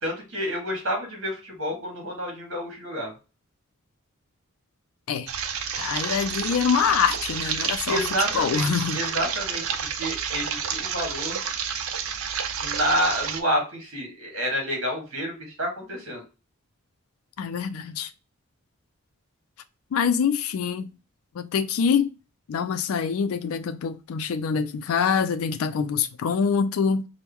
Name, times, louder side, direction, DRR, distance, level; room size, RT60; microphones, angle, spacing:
voice 1, 0.0-3.1 7.9-8.7 8.9-11.4 12.6-16.2, equal, 60° right, 1.5 m, -29 dB
sound 1, 5.3-13.4, right 7 dB, 80° right, 0.6 m, -30 dB
voice 2, 5.8-8.0 8.3-9.0 17.4-18.1 19.9-20.9 21.4-22.1 22.5-27.1, left 6 dB, 80° left, 0.4 m, -25 dB
4.5 x 2.1 x 3.5 m
head